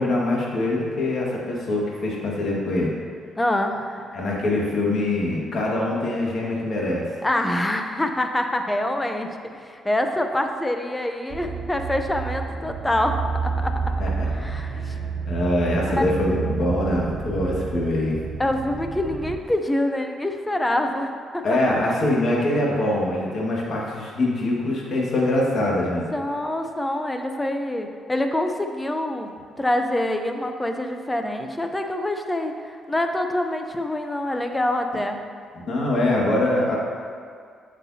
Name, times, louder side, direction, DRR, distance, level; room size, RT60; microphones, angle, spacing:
voice 1, 0.0-2.9 4.1-7.1 14.0-14.3 14.8-18.2 21.4-26.0 35.7-36.8, left 1 dB, 55° left, -3 dB, 1.8 m, -23 dB
voice 2, 3.4-4.1 7.2-13.2 13.4-13.8 14.2-14.9 15.9-16.2 18.4-21.9 26.1-29.3 29.6-35.2, left 1 dB, 15° left, 5 dB, 0.7 m, -26 dB
sound 1, 11.3-19.4, right 5 dB, 65° right, 0.4 m, -29 dB
8.0 x 7.3 x 2.8 m, 2.2 s
cardioid pair, 90°, 0 cm